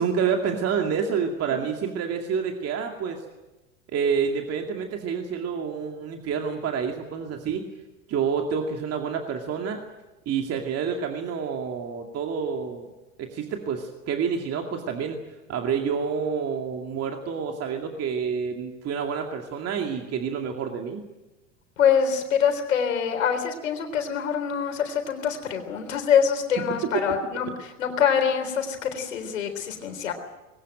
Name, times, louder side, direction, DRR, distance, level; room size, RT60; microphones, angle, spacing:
voice 1, 0.0-3.2 3.9-7.6 8.1-9.8 10.3-12.9 13.2-15.2 15.5-21.0, right 6 dB, 40° right, 3 dB, 2.4 m, -28 dB
voice 2, 21.8-30.1, left 7 dB, 80° left, 6 dB, 3.8 m, -25 dB
20.5 x 18.0 x 9.1 m, 1.1 s
hypercardioid pair, 85°, 38 cm